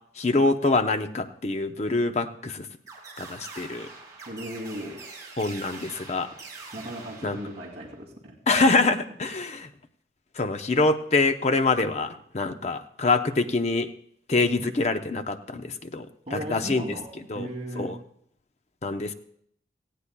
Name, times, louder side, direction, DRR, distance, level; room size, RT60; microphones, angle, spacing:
voice 1, 0.2-2.7 3.2-3.9 5.4-6.3 7.2-7.4 8.5-9.7 10.4-13.9 14.3-17.0 17.3-17.5 17.8-18.0 18.8-19.1, left 3 dB, 40° left, 8 dB, 0.6 m, -25 dB
sound 1, 2.9-8.0, right 4 dB, 20° right, 3.5 m, -44 dB
voice 2, 4.3-5.0 6.7-8.4 16.3-17.9, equal, 35° right, -3 dB, 2.6 m, -36 dB
18.0 x 15.0 x 2.2 m, 0.67 s
head